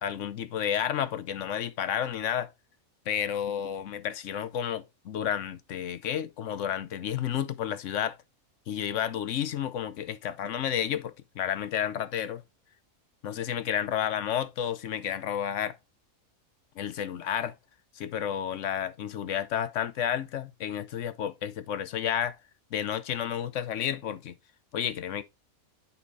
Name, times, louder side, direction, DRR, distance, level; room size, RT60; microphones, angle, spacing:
voice 1, 0.0-2.5 3.1-8.2 8.7-12.4 13.2-15.8 16.8-17.5 17.9-22.4 22.7-24.4 24.7-25.2, left 9 dB, 65° left, 1.0 m, -31 dB
9.5 x 4.3 x 4.0 m
omnidirectional pair, 1.4 m